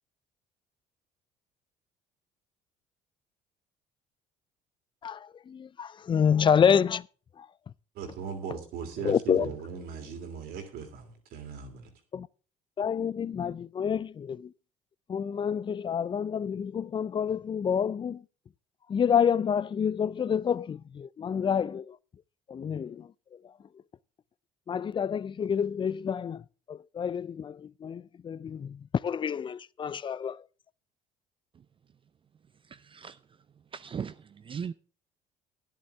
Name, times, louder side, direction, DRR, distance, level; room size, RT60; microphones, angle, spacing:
voice 1, 5.5-7.0 9.1-9.5 12.1-12.3 12.8-14.4 15.1-18.2 18.9-21.8 22.5-23.0 24.7-26.4 26.7-27.5 27.8-28.8 29.0-30.4, left 7 dB, 30° left, 0.4 m, -28 dB
voice 2, 7.9-11.9, right 6 dB, 70° right, 3.0 m, -39 dB
voice 3, 32.6-33.4 33.7-34.7, right 7 dB, 35° right, 0.5 m, -39 dB
12.5 x 10.5 x 3.5 m
supercardioid pair, 80°, 16 cm